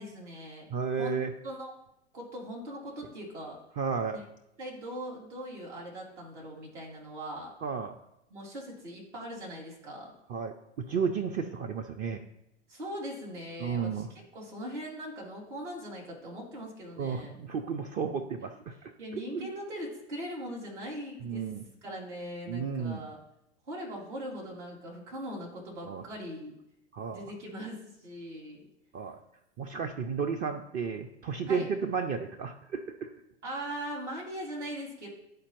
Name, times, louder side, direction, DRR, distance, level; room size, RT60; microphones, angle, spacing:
voice 1, 0.0-0.7 1.0-1.7 2.1-3.6 4.1-4.2 4.6-7.5 8.3-10.1 12.7-14.1 14.3-17.4 19.0-21.5 21.8-23.2 23.7-26.6 27.1-28.7 31.5-31.7 33.4-35.1, equal, 80° right, -4 dB, 2.8 m, -40 dB
voice 2, 0.7-1.3 3.8-4.2 7.6-7.9 10.3-12.2 13.6-14.1 17.0-19.5 21.2-21.6 22.5-23.1 25.8-26.1 26.9-27.2 28.9-29.2 29.6-33.1, right 6 dB, 25° right, 6 dB, 0.4 m, -33 dB
11.0 x 4.3 x 3.0 m, 0.81 s
hypercardioid pair, 100°, 35 cm